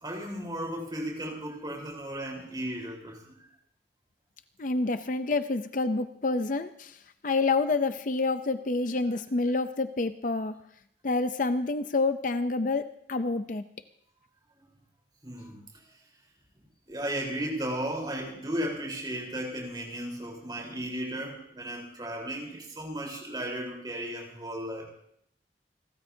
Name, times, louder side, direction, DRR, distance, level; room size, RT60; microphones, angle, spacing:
voice 1, 0.0-3.3 15.2-15.6 16.9-24.9, right 1 dB, 25° right, 0 dB, 4.0 m, -35 dB
voice 2, 4.6-7.0 7.2-10.5 11.0-13.6, left 3 dB, 50° left, 10 dB, 0.6 m, -28 dB
29.0 x 13.5 x 2.8 m, 0.69 s
head